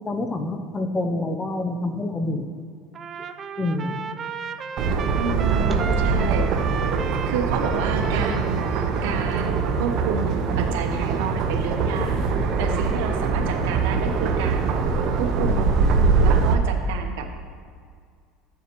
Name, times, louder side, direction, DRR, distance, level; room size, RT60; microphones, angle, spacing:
voice 1, 0.0-2.4 3.6-4.0, left 2 dB, 25° left, 7 dB, 0.7 m, -27 dB
Trumpet, 2.9-10.0, right 7 dB, 35° right, 0.4 m, -35 dB
sound 1, 4.8-16.5, right 4 dB, 55° right, 0.8 m, -22 dB
voice 2, 5.2-6.5 7.3-8.6 9.0-12.2 12.6-14.7 15.2-15.8 16.2-17.3, right 6 dB, 80° right, 4 dB, 1.0 m, -30 dB
11.0 x 7.1 x 3.1 m, 2.1 s
supercardioid pair, 110°, 0 cm